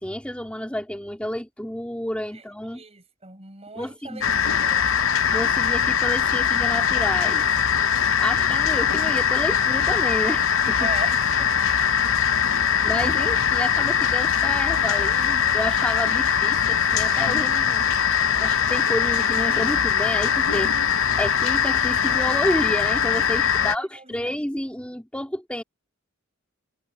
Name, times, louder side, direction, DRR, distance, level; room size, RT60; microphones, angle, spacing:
voice 1, 0.0-2.8 3.7-4.4 5.3-7.5 8.2-10.9 12.8-17.9 18.4-20.7 21.2-25.6, equal, 5° left, 3.3 m, -30 dB
voice 2, 2.7-4.9 10.8-11.5 23.4-24.2, right 3 dB, 30° right, 5.5 m, -39 dB
sound 1, 4.2-23.7, left 8 dB, 70° left, 0.8 m, -21 dB
head